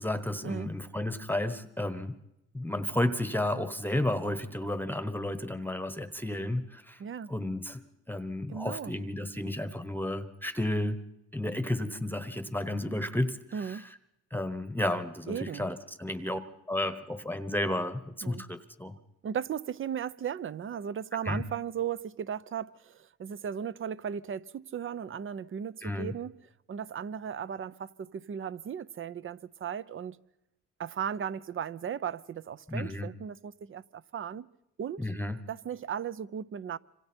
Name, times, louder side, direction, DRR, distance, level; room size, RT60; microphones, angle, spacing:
voice 1, 0.0-2.2 2.5-7.0 7.3-7.8 8.1-11.0 11.3-13.9 14.3-16.4 16.7-18.9 21.2-21.4 25.8-26.1 32.7-33.1 35.0-35.4, left 1 dB, 5° left, 1.1 m, -32 dB
voice 2, 7.0-7.3 8.5-8.9 13.5-13.9 15.3-15.7 18.2-18.4 19.2-26.3 26.7-30.2 30.8-34.5 34.8-35.1 35.5-36.8, right 8 dB, 45° right, 0.7 m, -36 dB
26.5 x 25.5 x 4.5 m
cardioid pair, 90°, 30 cm